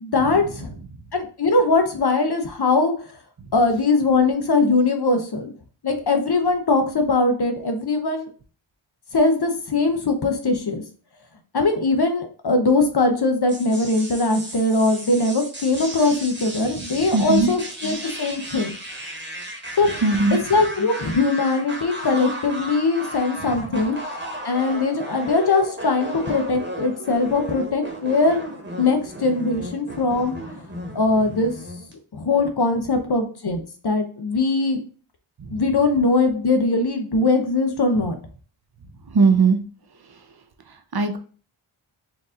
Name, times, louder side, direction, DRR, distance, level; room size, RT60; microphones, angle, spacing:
voice 1, 0.0-0.8 1.1-2.9 3.5-5.5 5.8-8.3 9.1-10.8 11.5-18.7 19.8-19.9 20.3-24.0 24.4-28.4 28.8-30.4 30.9-31.5 32.1-34.8 35.5-38.1, left 3 dB, 50° left, 5 dB, 0.8 m, -21 dB
sound 1, 13.5-31.9, right 1 dB, 20° right, 1.2 m, -35 dB
voice 2, 17.1-17.5 20.0-20.4 35.5-35.6 39.1-39.6 40.9-41.2, right 4 dB, 50° right, 7 dB, 0.7 m, -18 dB
4.5 x 2.6 x 3.7 m, 0.40 s
wide cardioid pair, 70°, 49 cm